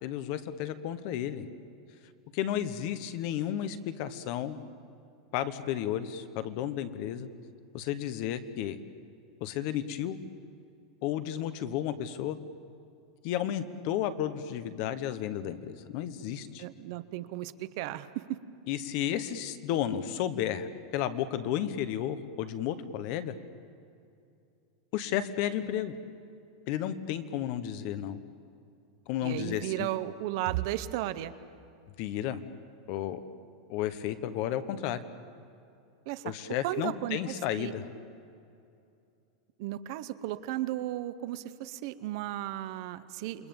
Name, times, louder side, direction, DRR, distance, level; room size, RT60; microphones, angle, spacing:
voice 1, 0.0-1.5 2.3-4.6 5.3-7.3 7.7-8.8 9.4-10.2 11.0-12.4 13.2-16.6 18.7-23.3 24.9-25.9 26.7-28.2 29.1-29.9 32.0-32.4 32.9-33.2 33.7-35.0 36.2-37.8, left 11 dB, 35° left, 12 dB, 1.1 m, -32 dB
voice 2, 16.6-18.4 29.2-31.3 36.1-36.3 36.6-37.7 39.6-43.5, right 14 dB, 40° right, 13 dB, 0.8 m, -35 dB
28.5 x 23.0 x 7.2 m, 2.5 s
supercardioid pair, 175°, 3 cm